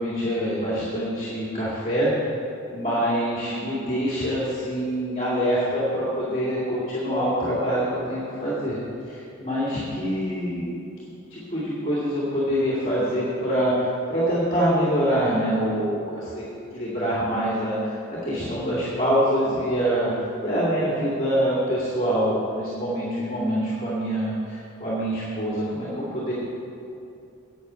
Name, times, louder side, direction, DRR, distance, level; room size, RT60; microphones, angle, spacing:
voice 1, 0.0-2.1 2.7-8.8 9.1-10.7 11.3-16.4 16.7-20.1 20.4-26.3, equal, 25° left, -8 dB, 2.4 m, -25 dB
8.9 x 8.8 x 6.9 m, 2.7 s
head